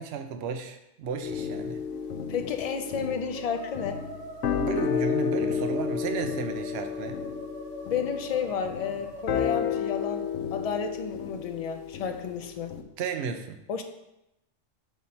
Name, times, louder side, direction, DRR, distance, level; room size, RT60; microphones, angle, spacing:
voice 1, 0.0-1.8 4.5-7.2 13.0-13.6, right 6 dB, 65° right, 6 dB, 0.8 m, -33 dB
sound 1, 1.2-12.8, left 7 dB, 85° left, 0.9 m, -32 dB
Musical instrument, 1.6-10.4, equal, 90° right, 3.0 m, -43 dB
voice 2, 2.3-4.1 7.8-12.8 13.7-13.8, left 6 dB, 65° left, 6 dB, 0.3 m, -32 dB
5.8 x 4.3 x 4.2 m, 0.88 s
omnidirectional pair, 1.2 m